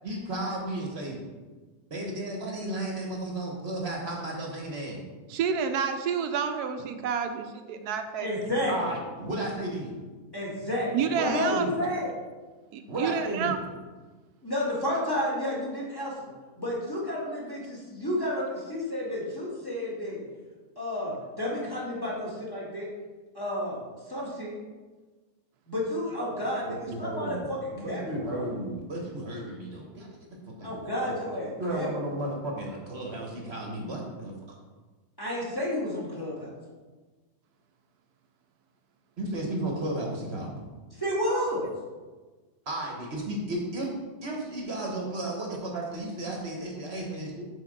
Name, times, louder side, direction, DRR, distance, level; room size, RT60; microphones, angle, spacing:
voice 1, 0.0-1.2 1.9-5.0 8.7-9.9 11.1-11.8 12.9-13.6 26.7-30.1 30.5-31.2 31.6-34.3 39.2-40.6 42.7-43.9 44.2-47.5, right 1 dB, 45° right, -1 dB, 1.2 m, -33 dB
voice 2, 5.3-8.4 10.9-11.9 12.7-13.6, right 7 dB, 90° right, 7 dB, 1.1 m, -29 dB
voice 3, 8.2-8.9 10.3-12.1 14.4-16.3 16.6-20.2 20.8-22.9 23.3-24.5 25.7-28.5 30.6-31.9 32.1-32.3 35.2-36.5 40.9-41.6, left 1 dB, 15° left, -6 dB, 1.7 m, -31 dB
7.0 x 3.8 x 5.1 m, 1.3 s
omnidirectional pair, 1.6 m